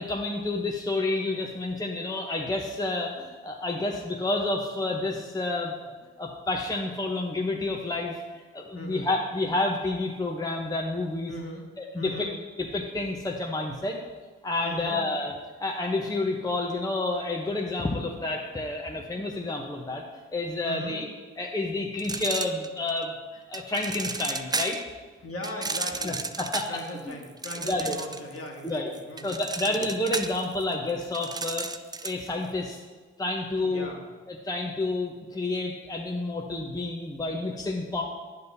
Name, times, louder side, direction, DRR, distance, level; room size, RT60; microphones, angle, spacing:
voice 1, 0.0-5.9 6.2-11.3 11.8-12.3 12.6-14.0 14.4-15.3 15.6-20.0 20.3-21.1 21.4-24.8 26.0-26.7 27.1-27.2 27.6-28.0 28.6-28.9 29.2-31.7 32.0-32.8 33.2-33.9 34.3-38.0, left 2 dB, 10° left, 0 dB, 0.8 m, -29 dB
voice 2, 8.7-9.1 11.3-11.7 11.9-12.3 14.6-15.0 20.6-21.0 25.2-26.2 26.7-29.9 33.6-34.0, left 1 dB, 45° left, 0 dB, 1.6 m, -39 dB
sound 1, 22.0-23.0 23.5-24.9 25.4-28.4 28.7-32.3, right 3 dB, 15° right, 0.3 m, -33 dB
9.6 x 5.3 x 2.7 m, 1.4 s
hypercardioid pair, 40°, 32 cm